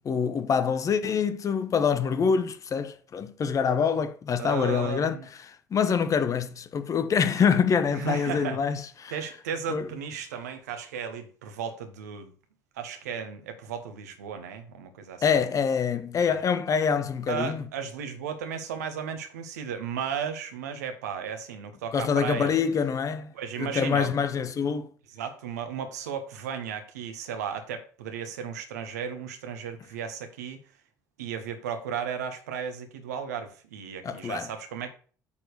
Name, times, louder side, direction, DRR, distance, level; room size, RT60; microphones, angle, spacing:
voice 1, 0.0-5.2 5.5-9.1 9.7-9.9 15.2-17.6 21.9-23.3 23.6-24.9 34.0-34.5, left 6 dB, 35° left, 1.1 m, -25 dB
voice 2, 4.4-5.3 7.9-8.6 9.1-12.3 12.7-15.3 16.3-16.4 17.3-22.5 23.3-24.1 25.1-30.6 31.2-34.9, right 7 dB, 70° right, 1.5 m, -35 dB
8.6 x 4.6 x 6.6 m
figure-of-eight pair, 55°, 9 cm